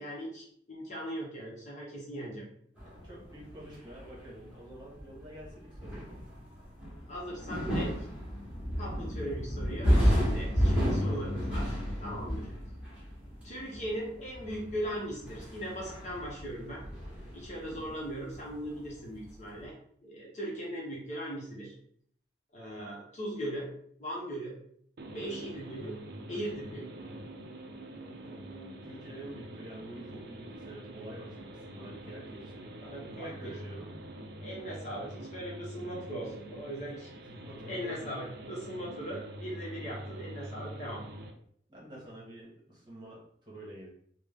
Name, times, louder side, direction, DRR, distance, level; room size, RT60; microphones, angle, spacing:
voice 1, 0.0-2.5 7.1-8.1 8.8-12.5 13.4-16.8 17.3-19.7 20.0-21.7 22.5-23.7 24.0-24.6 25.1-26.0 26.3-26.9 32.8-33.3 34.4-37.1 37.7-41.0, equal, 40° left, -4 dB, 0.9 m, -39 dB
sound 1, 2.8-18.7 18.9-19.6, equal, 5° right, 1.1 m, -32 dB
voice 2, 2.9-6.1 10.7-10.8 11.0-11.3 17.6-18.0 28.2-33.9 37.3-38.0 39.7-40.0 41.7-43.9, right 1 dB, 25° right, -6 dB, 1.2 m, -48 dB
sound 2, 25.0-41.3, right 1 dB, 55° right, 0.5 m, -45 dB
3.4 x 2.1 x 3.6 m, 0.64 s
head